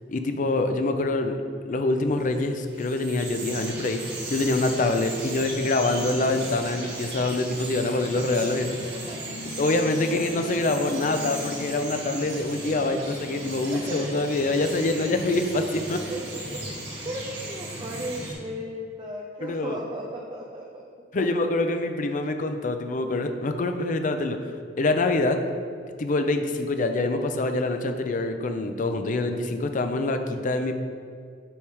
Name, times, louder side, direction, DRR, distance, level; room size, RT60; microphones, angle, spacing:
voice 1, 0.1-1.4 1.7-4.0 4.3-8.8 9.6-16.0 19.4-19.8 21.1-24.4 24.8-25.4 26.0-30.8, left 2 dB, 45° left, 7 dB, 0.5 m, -25 dB
Bird vocalization bird call bird song, 2.2-18.3, right 1 dB, 70° right, 1.6 m, -36 dB
voice 2, 13.7-14.5 15.7-16.6 17.0-20.8 21.1-21.5, equal, 30° right, -1 dB, 0.5 m, -37 dB
7.0 x 3.6 x 4.7 m, 2.2 s
head